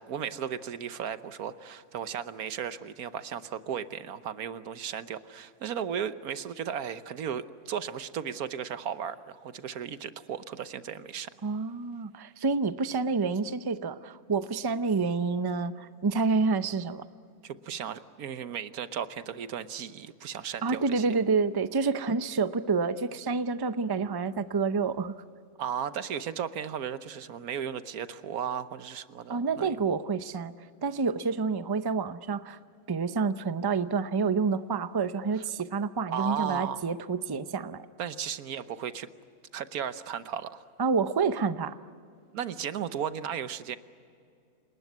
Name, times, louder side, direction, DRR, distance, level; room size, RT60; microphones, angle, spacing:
voice 1, 0.0-11.3 17.4-21.0 25.6-29.7 36.1-36.8 38.0-39.1 39.5-40.7 42.3-43.8, right 8 dB, 90° right, 12 dB, 1.4 m, -35 dB
voice 2, 11.4-17.1 20.6-25.1 29.3-30.5 30.8-32.6 32.9-37.9 40.8-41.8, right 4 dB, 25° right, 12 dB, 0.5 m, -28 dB
28.5 x 19.5 x 9.5 m, 2.4 s
omnidirectional pair, 1.5 m